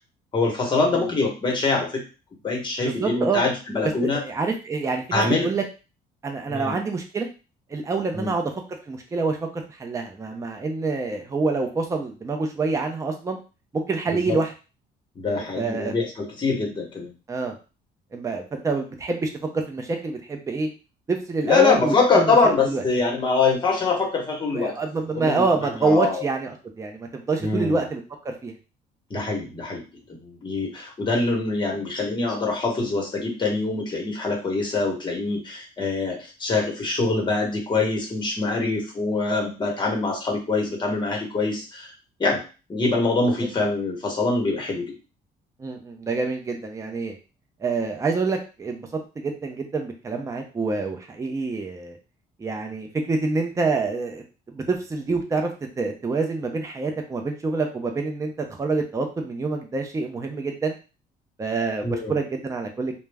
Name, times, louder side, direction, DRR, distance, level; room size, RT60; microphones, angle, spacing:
voice 1, 0.3-2.0 2.4-4.2 5.1-5.5 6.5-6.8 8.1-8.3 14.1-14.4 15.2-17.1 21.5-24.8 25.1-26.2 27.4-27.8 29.1-29.8 30.1-41.9 42.2-42.4 42.7-44.9 61.8-62.1, left 3 dB, 25° left, 0 dB, 1.0 m, -24 dB
voice 2, 2.8-3.4 4.0-5.6 6.2-7.3 7.7-8.5 8.9-13.4 13.9-14.5 15.2-15.9 17.3-17.5 18.1-19.3 19.7-20.7 21.1-22.3 22.6-22.8 24.5-28.5 43.4-43.5 45.6-47.2 47.6-48.9 49.2-52.0 52.4-55.5 55.8-60.7 61.4-62.9, right 3 dB, 20° right, 3 dB, 0.5 m, -27 dB
2.2 x 2.1 x 3.3 m, 0.32 s
cardioid pair, 110°, 17 cm